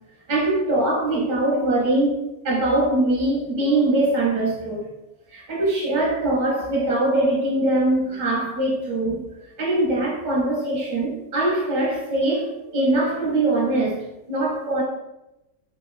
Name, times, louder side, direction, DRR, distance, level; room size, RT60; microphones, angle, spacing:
voice 1, 0.3-2.2 2.4-4.9 5.3-9.2 9.6-14.0 14.3-14.8, right 2 dB, 40° right, -5 dB, 0.7 m, -22 dB
2.9 x 2.2 x 2.5 m, 0.94 s
omnidirectional pair, 1.7 m